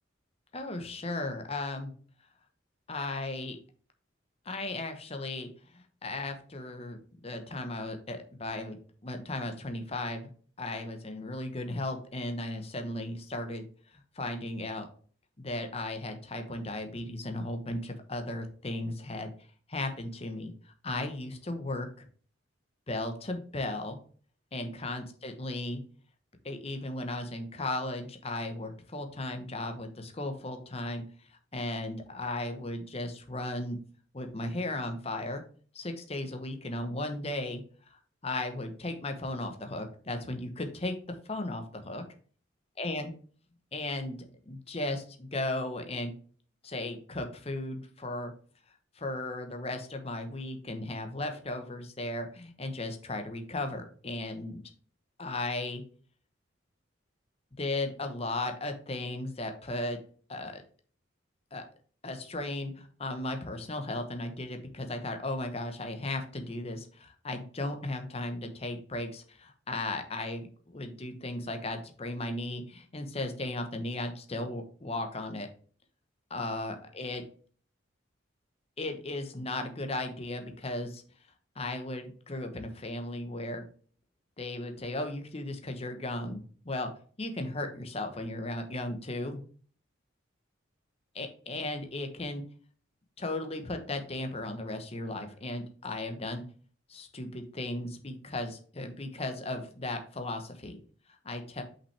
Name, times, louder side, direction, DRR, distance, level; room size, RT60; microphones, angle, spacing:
voice 1, 0.5-1.9 2.9-3.6 4.4-10.3 10.6-13.7 13.9-14.9 15.4-19.3 19.7-22.0 22.9-24.0 24.5-25.8 26.4-31.0 31.5-33.8 34.1-35.4 35.7-38.0 38.2-40.9 41.3-42.0 42.8-43.1 43.7-46.1 46.6-48.3 49.0-54.6 55.2-55.8 57.6-60.0 60.3-60.6 61.5-61.6 62.0-75.5 76.3-77.2 78.8-81.0 81.6-83.7 84.4-86.9 87.2-89.4 91.1-92.4 93.2-96.4 96.9-100.8 101.2-101.6, left 2 dB, 30° left, 6 dB, 0.9 m, -36 dB
5.9 x 5.6 x 3.3 m, 0.44 s
head